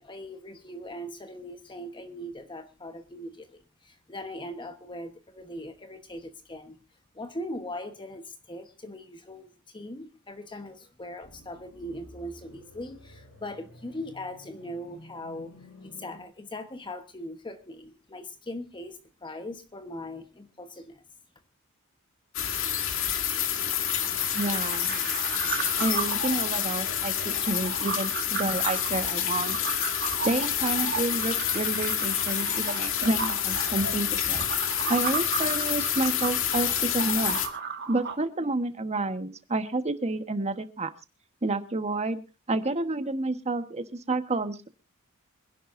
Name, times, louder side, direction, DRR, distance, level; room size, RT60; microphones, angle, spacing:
voice 1, 0.0-6.8 7.1-21.0, left 1 dB, 20° left, 7 dB, 1.1 m, -40 dB
sound 1, 11.2-16.2, left 1 dB, 80° left, 5.2 m, -51 dB
sound 2, 22.3-37.5, left 9 dB, 65° left, 2.2 m, -28 dB
sound 3, 23.8-38.2, right 6 dB, 50° right, 2.1 m, -36 dB
voice 2, 24.3-25.0 25.8-29.6 30.2-34.4 34.9-37.4 37.9-40.9 41.4-42.2 42.5-44.7, right 2 dB, 30° right, 10 dB, 1.2 m, -29 dB
26.0 x 11.0 x 2.6 m, 0.30 s
head